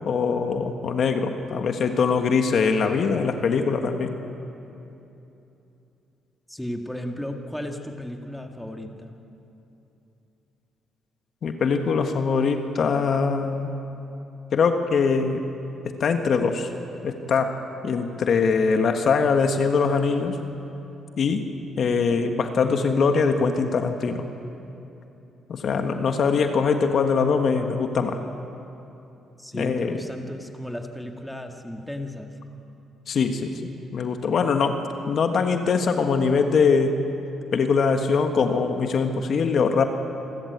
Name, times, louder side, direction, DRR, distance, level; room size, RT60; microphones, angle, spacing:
voice 1, 0.0-4.1 11.4-13.7 14.5-15.4 15.8-16.7 17.0-17.6 17.8-20.4 21.2-21.4 21.8-24.3 25.5-28.2 29.5-30.0 33.1-33.6 33.9-34.8 35.1-37.0 37.5-39.8, left 5 dB, 60° left, 6 dB, 1.4 m, -22 dB
voice 2, 6.5-9.1 29.4-32.3, left 1 dB, 5° left, 3 dB, 1.9 m, -34 dB
27.5 x 13.5 x 8.1 m, 2.9 s
cardioid pair, 90°, 0 cm